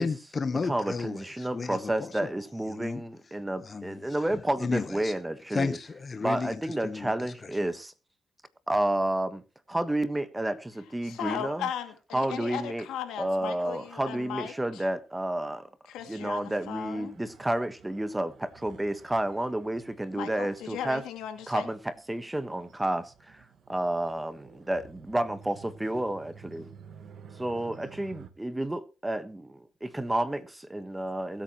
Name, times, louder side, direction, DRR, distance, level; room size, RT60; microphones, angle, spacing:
voice 1, 0.0-2.3 2.7-3.0 3.6-4.2 4.6-5.1 5.5-7.6, left 4 dB, 35° left, 1.0 m, -33 dB
voice 2, 0.7-5.8 6.2-7.9 8.7-9.4 9.7-11.6 12.1-12.9 13.2-15.7 16.1-21.0 21.5-21.8 22.1-23.4 23.7-26.7 27.4-31.4, right 1 dB, 10° right, 1.3 m, -30 dB
voice 3, 11.0-14.8 15.9-17.2 20.1-21.7, left 9 dB, 85° left, 2.4 m, -37 dB
sound 1, 16.0-28.3, right 7 dB, 60° right, 1.5 m, -52 dB
22.0 x 8.8 x 3.0 m
cardioid pair, 90°, 0 cm